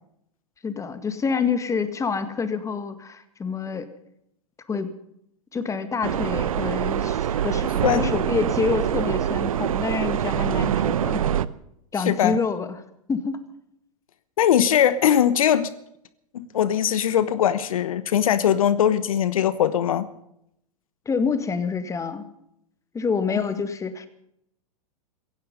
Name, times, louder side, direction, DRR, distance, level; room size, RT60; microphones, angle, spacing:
voice 1, 0.6-3.9 4.7-4.9 5.5-11.2 11.9-12.8 13.1-13.4 21.1-22.3 22.9-24.1, left 5 dB, 15° left, 11 dB, 1.9 m, -27 dB
sound 1, 6.0-11.5, right 10 dB, 75° right, 0.8 m, -24 dB
voice 2, 12.1-12.4 14.4-15.7 16.3-20.1 23.3-23.4, left 9 dB, 70° left, 15 dB, 1.1 m, -21 dB
17.0 x 16.0 x 5.4 m, 0.76 s
hypercardioid pair, 100°, 18 cm